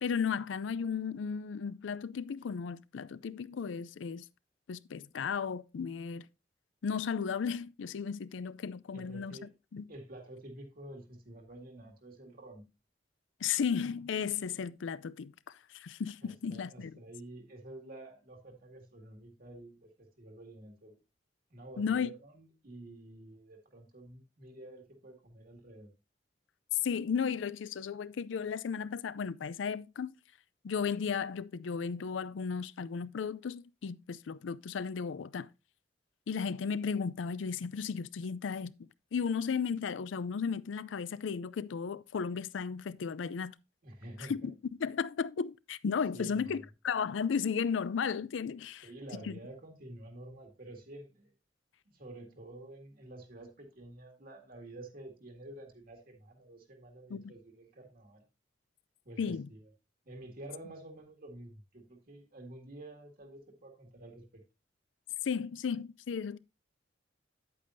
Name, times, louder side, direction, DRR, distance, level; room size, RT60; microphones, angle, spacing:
voice 1, 0.0-4.2 4.7-6.3 6.8-9.4 9.7-9.9 13.4-16.9 21.8-22.1 26.8-30.1 30.6-35.5 36.3-38.7 39.1-43.5 44.2-44.5 44.8-48.9 49.2-49.4 57.1-57.3 59.2-59.4 65.2-66.4, left 6 dB, 80° left, 0.4 m, -34 dB
voice 2, 8.9-9.5 9.9-12.7 16.2-21.0 21.5-25.9 43.8-44.3 46.1-46.6 48.8-51.3 51.9-58.2 59.0-59.6 60.1-64.2, right 1 dB, 50° right, 2.0 m, -49 dB
9.5 x 8.5 x 2.6 m
head